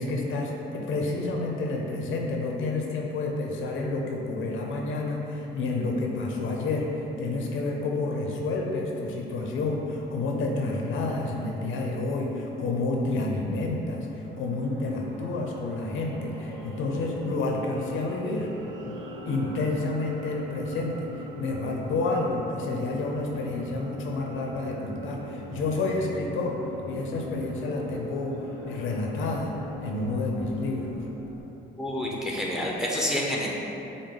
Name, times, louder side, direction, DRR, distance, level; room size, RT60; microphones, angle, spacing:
voice 1, 0.0-18.5 18.9-19.0 19.3-26.6 26.9-28.4 28.7-29.5 29.8-31.0, left 2 dB, 80° left, 0 dB, 0.6 m, -29 dB
sound 1, 14.1-31.4, equal, 70° right, 0.8 m, -41 dB
voice 2, 31.8-33.5, left 1 dB, 5° right, -3 dB, 0.7 m, -28 dB
6.3 x 2.1 x 3.9 m, 3.0 s
cardioid pair, 90°, 20 cm